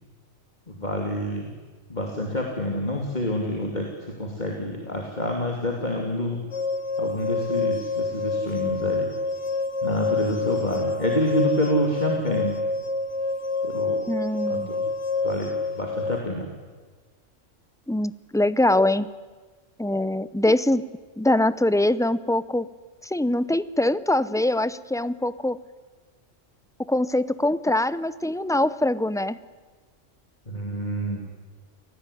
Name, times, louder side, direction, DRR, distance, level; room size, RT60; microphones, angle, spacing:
voice 1, 0.7-1.5 1.9-6.4 7.0-9.1 9.8-12.6 13.6-14.1 14.5-14.8 15.2-15.5 15.8-16.5 30.5-31.2, equal, 35° left, 1 dB, 3.0 m, -27 dB
sound 1, 6.5-16.2, left 3 dB, 60° left, 1.9 m, -27 dB
voice 2, 14.1-14.7 17.9-19.1 19.8-20.8 21.2-22.7 23.0-25.6 26.9-29.4, left 1 dB, 5° left, 16 dB, 0.4 m, -23 dB
29.0 x 18.5 x 9.9 m, 1.4 s
omnidirectional pair, 1.3 m